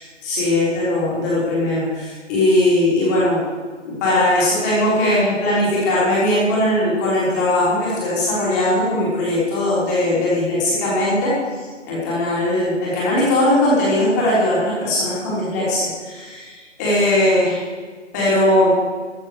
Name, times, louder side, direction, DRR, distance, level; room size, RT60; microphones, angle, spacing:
voice 1, 0.0-3.4 3.8-11.3 11.8-17.6 18.1-18.7, left 1 dB, 15° left, -7 dB, 3.7 m, -19 dB
14.0 x 7.7 x 6.6 m, 1.5 s
figure-of-eight pair, 155°, 38 cm